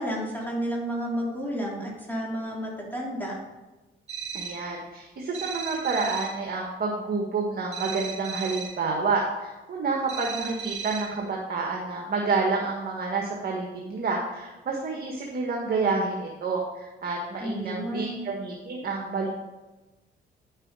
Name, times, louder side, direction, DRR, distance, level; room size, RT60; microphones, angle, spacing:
voice 1, 0.0-3.4 17.4-18.2, equal, 10° left, -4 dB, 3.2 m, -31 dB
sound 1, 4.1-4.7 5.3-6.4 7.7-8.8 10.1-11.2, right 6 dB, 35° right, 3.6 m, -36 dB
voice 2, 4.3-19.3, right 4 dB, 50° right, 0 dB, 1.6 m, -29 dB
9.7 x 6.6 x 4.9 m, 1.1 s
cardioid pair, 90°, 20 cm